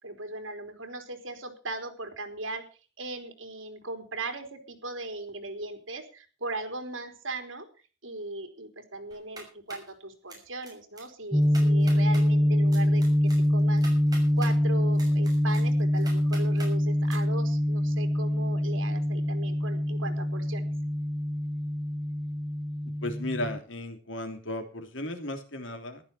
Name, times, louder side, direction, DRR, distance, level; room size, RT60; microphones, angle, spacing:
voice 1, 0.0-2.6 3.0-7.7 8.0-13.8 14.3-20.7, right 2 dB, 80° right, 5 dB, 4.1 m, -38 dB
sound 1, 9.1-9.9 10.3-10.7 11.0-11.1 11.4-12.2 12.7-14.5 15.0-16.7 17.1-17.2, right 3 dB, 20° right, 6.6 m, -44 dB
sound 2, 11.3-23.6, left 1 dB, ahead, 0.7 m, -25 dB
voice 2, 23.0-26.0, left 1 dB, 70° left, 6 dB, 3.3 m, -35 dB
15.0 x 12.0 x 5.6 m, 0.36 s
head